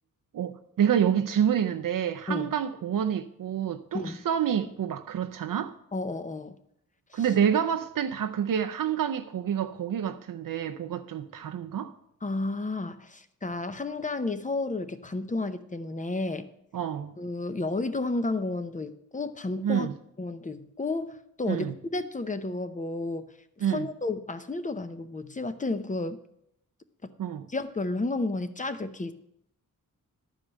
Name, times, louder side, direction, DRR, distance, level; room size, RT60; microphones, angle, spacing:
voice 1, 0.3-5.7 7.1-11.9 16.7-17.1 19.6-19.9 21.5-21.7 23.6-23.9 27.2-27.5, right 9 dB, 70° right, 0.6 m, -28 dB
voice 2, 3.9-4.3 5.9-6.6 7.1-7.3 12.2-16.5 17.2-19.9 20.2-21.7 21.9-26.2 27.0-27.1 27.5-29.1, left 2 dB, 20° left, 0.7 m, -32 dB
11.5 x 5.0 x 7.3 m
wide cardioid pair, 125°, 34 cm